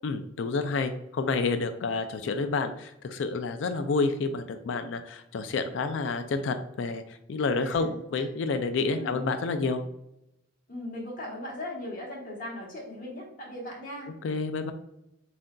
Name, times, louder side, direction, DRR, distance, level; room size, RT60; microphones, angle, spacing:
voice 1, 0.0-7.0 7.3-9.8 14.2-14.7, left 4 dB, 70° left, 8 dB, 0.4 m, -29 dB
voice 2, 7.6-8.3 8.9-9.2 10.7-14.1, left 1 dB, 45° left, -3 dB, 1.4 m, -39 dB
7.3 x 2.6 x 2.2 m, 0.86 s
head